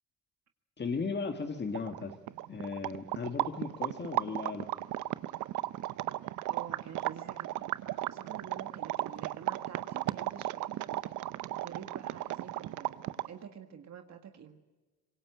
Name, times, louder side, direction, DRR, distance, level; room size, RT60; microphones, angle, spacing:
voice 1, 0.8-2.2 2.5-4.7, left 4 dB, 35° left, 6 dB, 1.8 m, -36 dB
sound 1, 1.7-13.4, right 15 dB, 85° right, 0.7 m, -35 dB
voice 2, 6.5-10.8 11.6-13.0 13.3-14.6, right 8 dB, 60° right, 6 dB, 1.7 m, -48 dB
25.0 x 21.5 x 8.0 m, 1.2 s
cardioid pair, 90°, 30 cm